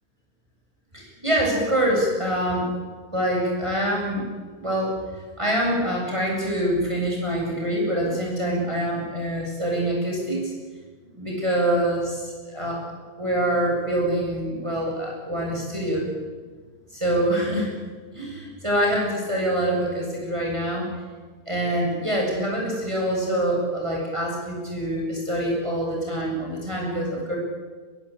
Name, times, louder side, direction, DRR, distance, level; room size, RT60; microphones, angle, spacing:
voice 1, 0.9-2.7 3.1-4.3 4.6-5.0 5.4-10.5 11.1-12.9 13.2-16.1 16.9-17.7 18.1-20.9 21.5-27.4, right 1 dB, 20° right, -2 dB, 8.0 m, -25 dB
22.0 x 22.0 x 8.8 m, 1.5 s
omnidirectional pair, 1.6 m